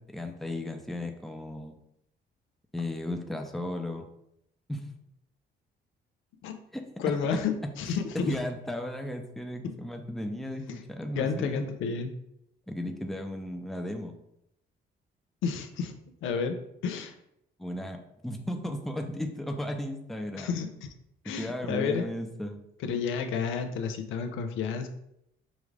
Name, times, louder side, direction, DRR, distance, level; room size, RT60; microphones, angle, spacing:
voice 1, 0.0-1.8 2.7-4.1 4.7-4.9 6.7-7.4 8.1-11.6 12.7-14.1 17.6-20.6 21.4-22.6, left 1 dB, ahead, 4 dB, 0.5 m, -35 dB
voice 2, 7.0-8.3 9.6-9.7 10.7-10.8 11.2-12.1 15.4-15.9 16.2-16.6 16.8-17.1 20.4-20.9 21.2-22.1 22.8-24.9, left 6 dB, 85° left, 7 dB, 0.5 m, -31 dB
5.0 x 2.4 x 3.1 m, 0.78 s
cardioid pair, 90°, 20 cm